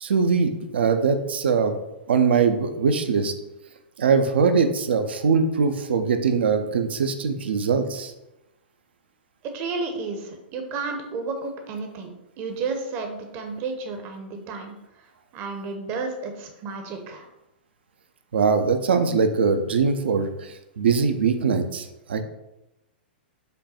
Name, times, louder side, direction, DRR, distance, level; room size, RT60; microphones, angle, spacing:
voice 1, 0.0-1.8 2.1-3.3 4.0-8.1 18.3-22.2, right 5 dB, 75° right, 8 dB, 0.5 m, -22 dB
voice 2, 9.5-12.1 12.4-14.8 15.3-17.3, right 4 dB, 40° right, 4 dB, 0.7 m, -32 dB
5.1 x 2.3 x 4.2 m, 0.95 s
hypercardioid pair, 115°, 6 cm